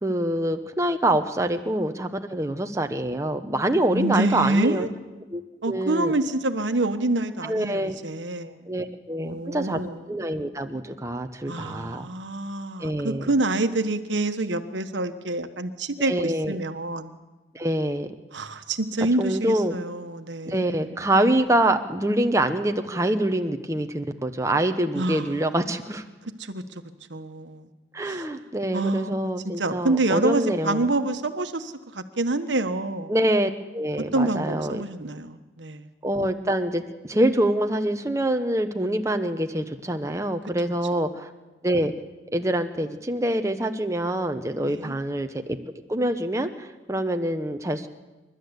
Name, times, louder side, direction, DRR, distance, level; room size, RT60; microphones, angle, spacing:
voice 1, 0.0-4.9 5.3-6.1 7.4-8.0 8.7-9.8 10.1-12.1 12.8-13.3 16.0-16.6 17.5-18.1 19.2-19.8 20.4-26.0 27.9-30.9 33.1-34.8 36.0-41.3 41.6-41.9 42.3-45.6 45.9-47.9, right 1 dB, 15° right, 6 dB, 1.0 m, -25 dB
voice 2, 3.9-4.9 5.6-8.6 9.2-10.2 11.5-17.1 18.3-21.0 24.9-25.6 26.4-26.8 27.1-27.7 28.0-28.2 28.7-29.3 29.6-33.1 34.1-35.9 40.6-41.0 44.6-45.0, right 2 dB, 80° right, 8 dB, 1.3 m, -27 dB
28.0 x 12.5 x 8.2 m, 1.1 s
head